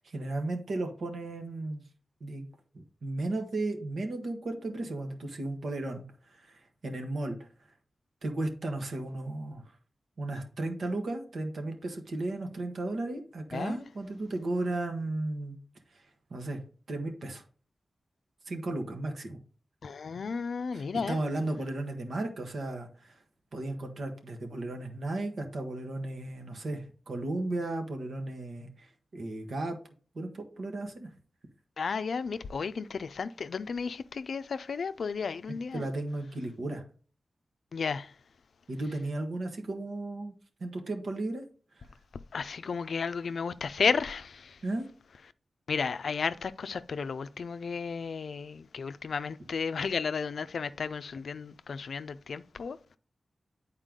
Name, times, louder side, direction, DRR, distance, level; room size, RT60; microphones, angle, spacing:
voice 1, 0.0-1.8 2.2-2.5 2.7-7.4 8.2-9.6 10.2-15.6 15.9-16.0 16.3-16.6 16.9-17.4 18.5-19.4 20.7-23.2 23.5-29.8 30.1-31.1 35.7-36.8 38.7-40.3 40.6-41.4 44.6-44.9, right 2 dB, 75° right, 1.5 m, -35 dB
voice 2, 19.8-21.2 31.8-35.8 37.7-38.1 42.3-44.6 45.7-52.8, left 5 dB, 80° left, 0.4 m, -33 dB
8.9 x 4.4 x 3.7 m
cardioid pair, 65°, 0 cm